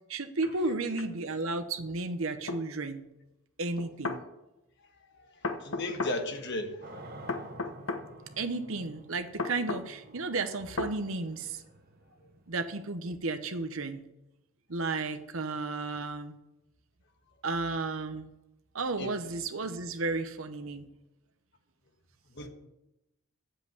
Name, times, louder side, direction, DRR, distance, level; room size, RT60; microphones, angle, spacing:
voice 1, 0.0-3.0 3.6-4.2 8.4-11.6 12.5-14.0 14.7-16.4 17.4-18.3 18.7-20.9, right 3 dB, 70° right, 8 dB, 1.0 m, -33 dB
sound 1, 2.5-2.6 3.8-4.2 5.4-6.2 7.3-8.0 9.4-9.9 10.8-10.9, left 3 dB, 70° left, 1.0 m, -33 dB
voice 2, 5.6-6.8 19.0-19.2 22.3-22.5, left 2 dB, 55° left, 5 dB, 1.5 m, -34 dB
sound 2, 6.8-13.7, right 1 dB, 45° right, 1.1 m, -51 dB
7.7 x 7.7 x 8.1 m, 0.93 s
head